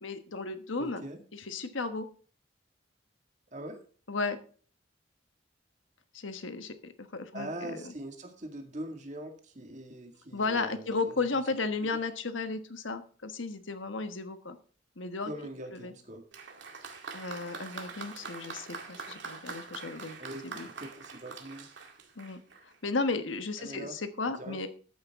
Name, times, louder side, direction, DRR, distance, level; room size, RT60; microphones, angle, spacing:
voice 1, 0.0-1.0 1.3-2.1 4.1-4.4 6.1-7.9 10.3-14.6 15.0-15.3 15.7-15.9 17.1-20.2 20.4-20.7 22.2-24.7, left 3 dB, 85° left, 9 dB, 1.3 m, -34 dB
voice 2, 0.8-1.2 3.5-3.8 7.3-11.3 15.2-16.2 20.2-21.7 23.6-23.9 24.4-24.6, right 1 dB, 40° right, 4 dB, 2.0 m, -42 dB
Applause, 16.3-22.8 23.7-23.8, right 4 dB, 70° right, 2.2 m, -44 dB
13.0 x 9.7 x 3.6 m, 0.42 s
head